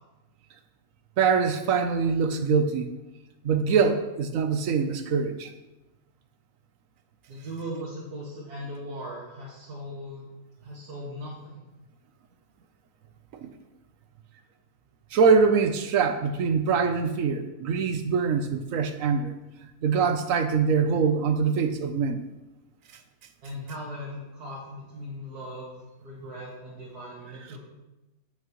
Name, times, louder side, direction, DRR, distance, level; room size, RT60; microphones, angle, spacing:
voice 1, 1.2-2.9 3.4-5.5 13.3-13.5 15.1-19.3 19.8-22.2, right 5 dB, 65° right, 9 dB, 1.0 m, -23 dB
voice 2, 7.3-10.3 10.6-11.6 23.4-25.7 26.0-27.6, equal, 85° right, -6 dB, 2.4 m, -38 dB
9.1 x 8.7 x 3.1 m, 1.0 s
omnidirectional pair, 1.6 m